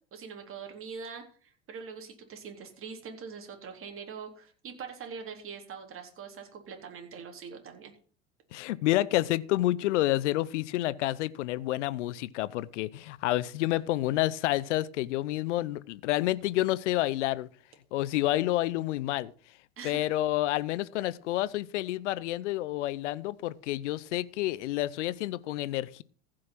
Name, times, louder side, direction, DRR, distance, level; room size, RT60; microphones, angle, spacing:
voice 1, 0.1-7.9 19.8-20.1, right 6 dB, 35° right, 3.8 m, -43 dB
voice 2, 8.5-17.5 17.9-19.3 19.8-26.0, left 16 dB, 70° left, 0.8 m, -29 dB
15.0 x 6.4 x 6.0 m
hypercardioid pair, 80°, 37 cm